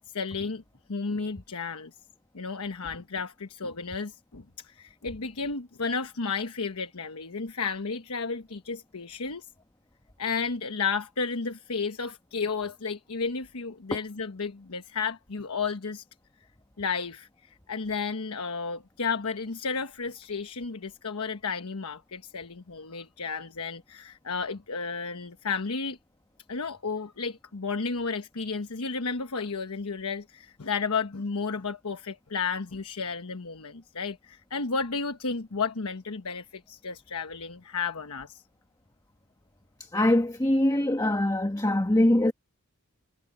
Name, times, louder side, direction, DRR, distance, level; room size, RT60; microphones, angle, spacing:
voice 1, 0.1-0.6 0.9-1.9 2.3-9.4 10.2-16.0 16.8-17.3 17.7-26.0 26.5-38.4, left 5 dB, 75° left, 1.1 m, -32 dB
voice 2, 39.9-42.3, left 1 dB, 15° left, 1.4 m, -23 dB
head